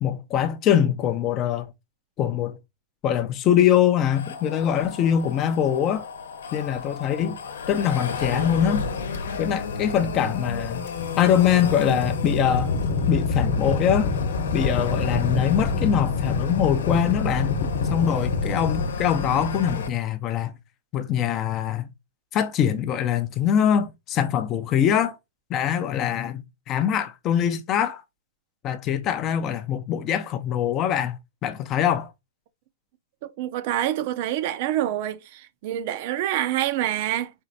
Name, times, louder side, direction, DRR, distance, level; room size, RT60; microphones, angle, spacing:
voice 1, 0.0-1.7 2.2-2.6 3.0-6.1 6.5-7.4 7.7-8.9 9.4-10.9 11.2-12.7 13.1-14.1 14.5-17.6 17.9-20.5 20.9-21.9 22.3-25.2 25.5-28.0 28.6-32.1, left 9 dB, 25° left, 0.4 m, -23 dB
sound 1, 4.1-19.9, left 3 dB, 80° left, 0.9 m, -30 dB
sound 2, 10.9-18.9, left 4 dB, 40° left, 1.0 m, -28 dB
voice 2, 33.2-37.3, right 12 dB, 40° right, 0.5 m, -26 dB
4.3 x 2.5 x 4.0 m
hypercardioid pair, 155°, 0 cm